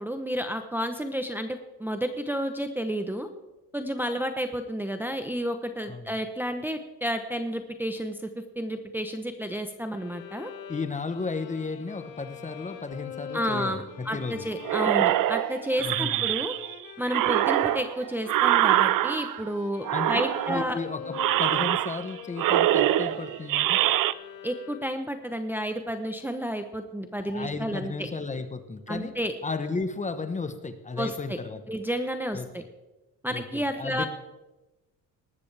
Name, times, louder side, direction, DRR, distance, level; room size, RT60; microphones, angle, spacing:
voice 1, 0.0-3.3 3.7-8.3 8.6-10.5 13.3-16.5 17.0-20.8 24.4-28.1 28.9-29.3 31.0-31.4 31.7-32.6 33.2-34.1, equal, 5° right, 7 dB, 0.8 m, -31 dB
Bowed string instrument, 9.9-25.2, left 7 dB, 70° left, 1.6 m, -44 dB
voice 2, 10.7-14.4 15.8-16.4 19.9-20.2 20.5-23.8 27.2-29.1 29.4-31.6 32.3-32.7 33.3-34.1, left 4 dB, 20° left, 10 dB, 1.0 m, -34 dB
sound 1, 14.7-16.7 17.1-19.5 19.8-20.7 21.1-22.1 22.4-24.1, right 14 dB, 65° right, 0.5 m, -24 dB
19.0 x 13.0 x 3.4 m, 1.1 s
cardioid pair, 115°, 36 cm